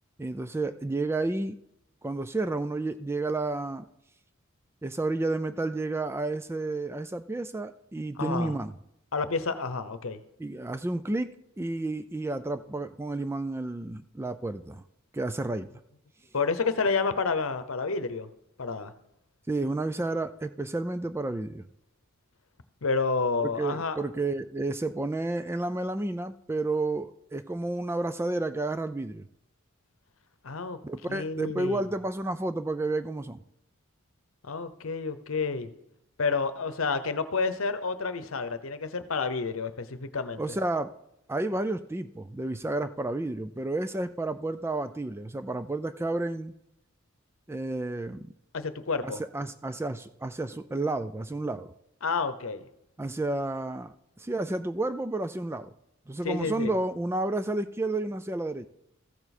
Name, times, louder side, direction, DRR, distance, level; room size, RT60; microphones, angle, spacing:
voice 1, 0.2-1.6 2.0-3.9 4.8-8.7 10.4-14.8 15.1-15.7 19.5-21.7 23.6-29.3 30.8-33.4 40.4-40.9 41.3-46.5 47.5-48.3 49.0-51.7 53.0-55.7 56.1-58.7, right 2 dB, 10° right, 12 dB, 0.3 m, -31 dB
voice 2, 8.2-8.5 9.1-10.2 16.3-18.3 18.6-18.9 22.8-24.0 30.4-30.8 31.1-31.8 34.4-35.7 36.2-40.4 48.5-49.2 52.0-52.6 56.2-56.7, left 4 dB, 70° left, 11 dB, 0.8 m, -29 dB
14.5 x 7.0 x 4.2 m, 0.79 s
head